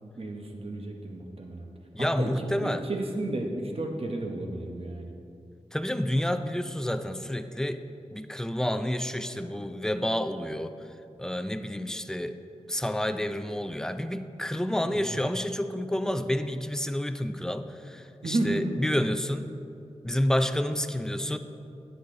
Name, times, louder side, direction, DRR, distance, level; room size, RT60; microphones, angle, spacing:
voice 1, 0.2-1.7 2.0-2.3 2.6-5.1 14.8-15.2 18.2-18.8, right 2 dB, 55° right, 2 dB, 1.0 m, -32 dB
voice 2, 1.9-2.9 5.7-7.8 8.1-10.8 11.2-12.4 12.7-19.5 20.0-21.4, left 1 dB, 5° left, 9 dB, 0.4 m, -29 dB
10.0 x 8.1 x 3.8 m, 2.7 s
wide cardioid pair, 75°, 12 cm